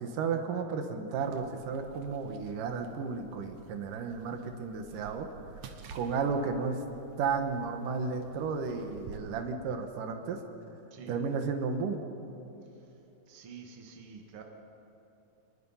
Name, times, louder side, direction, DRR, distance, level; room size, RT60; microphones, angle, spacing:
voice 1, 0.0-5.3 5.9-6.8 7.2-10.4 11.1-12.0, right 5 dB, 90° right, 6 dB, 2.9 m, -33 dB
sound 1, 1.2-9.2, right 6 dB, 65° right, 2.5 m, -52 dB
voice 2, 13.3-14.4, right 6 dB, 50° right, 2 dB, 2.4 m, -48 dB
26.0 x 20.5 x 5.6 m, 2.9 s
omnidirectional pair, 3.6 m